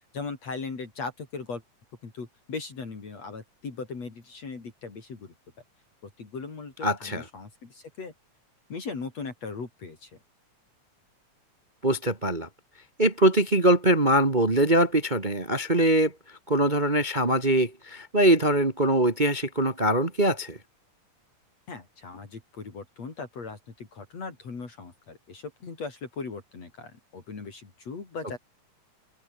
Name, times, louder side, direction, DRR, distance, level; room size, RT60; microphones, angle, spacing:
voice 1, 0.1-1.6 2.0-5.3 6.0-8.1 8.7-10.2 21.7-28.4, left 4 dB, 60° left, 5.4 m, -38 dB
voice 2, 6.8-7.2 11.8-12.5 13.0-16.1 16.5-20.6, right 1 dB, 20° right, 1.4 m, -22 dB
open air
omnidirectional pair, 3.4 m